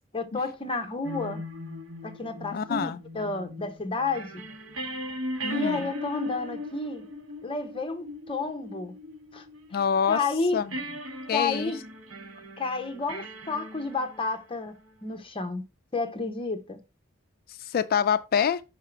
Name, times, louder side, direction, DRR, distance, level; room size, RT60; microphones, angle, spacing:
voice 1, 0.1-1.4 2.0-4.4 5.5-7.1 7.4-8.9 9.3-9.4 10.1-10.6 11.3-11.8 12.6-14.7 15.0-15.6 15.9-16.8, left 3 dB, 25° left, 0.8 m, -31 dB
sound 1, 1.0-10.1 10.7-14.9, left 1 dB, 70° right, 1.1 m, -38 dB
voice 2, 2.5-3.0 5.4-5.9 9.7-10.2 10.5-10.8 11.3-11.7 17.5-18.6, left 7 dB, 45° left, 0.3 m, -26 dB
5.7 x 3.7 x 4.5 m
head